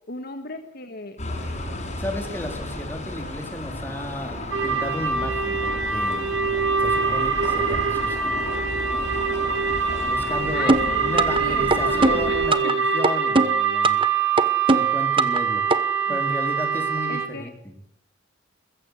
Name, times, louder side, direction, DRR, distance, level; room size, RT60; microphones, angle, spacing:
voice 1, 0.1-1.2 10.5-11.1 11.4-12.4 12.6-12.7 16.1-16.2 17.1-17.5, left 3 dB, 55° left, 6 dB, 1.7 m, -35 dB
sound 1, 1.2-12.5, left 1 dB, 35° left, 6.3 m, -33 dB
voice 2, 2.0-6.3 6.8-8.4 10.1-14.0 14.7-15.6 16.1-17.8, left 1 dB, 10° left, 3 dB, 3.9 m, -33 dB
sound 2, 4.5-17.3, right 5 dB, 70° right, 2.5 m, -24 dB
sound 3, 10.7-11.4 11.7-12.7 13.0-14.1 14.4-15.4 15.7-15.8, right 2 dB, 25° right, 1.1 m, -20 dB
22.0 x 15.5 x 8.3 m, 0.71 s
head